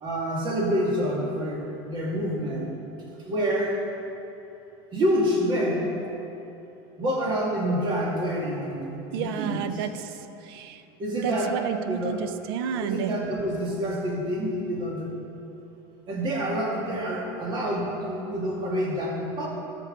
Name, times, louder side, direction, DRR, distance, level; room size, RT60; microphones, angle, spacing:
voice 1, 0.0-2.7 3.2-3.8 4.9-5.9 7.0-9.8 11.0-11.6 11.8-12.2 12.8-15.1 16.1-19.5, equal, 40° right, -3 dB, 2.2 m, -27 dB
voice 2, 9.1-10.8 11.2-13.1, right 8 dB, 80° right, 10 dB, 0.6 m, -31 dB
12.5 x 6.2 x 4.0 m, 2.9 s
supercardioid pair, 120°, 12 cm